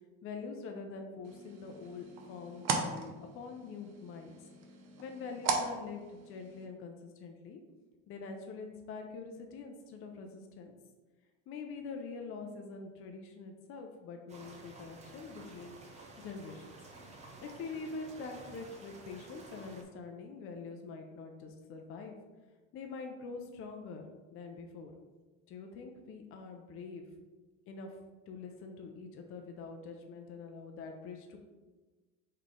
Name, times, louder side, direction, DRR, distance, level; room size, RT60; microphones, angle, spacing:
voice 1, 0.2-4.3 5.0-7.6 8.1-10.7 11.5-15.8 16.2-16.7 17.4-22.2 22.7-24.9 25.5-27.1 27.7-28.0 28.3-31.4, left 4 dB, 45° left, 3 dB, 0.5 m, -45 dB
sound 1, 1.2-6.7, right 5 dB, 60° right, 0.7 m, -38 dB
sound 2, 14.3-19.8, right 2 dB, 25° right, 0.6 m, -52 dB
3.9 x 3.2 x 3.6 m, 1.2 s
cardioid pair, 145°, 30 cm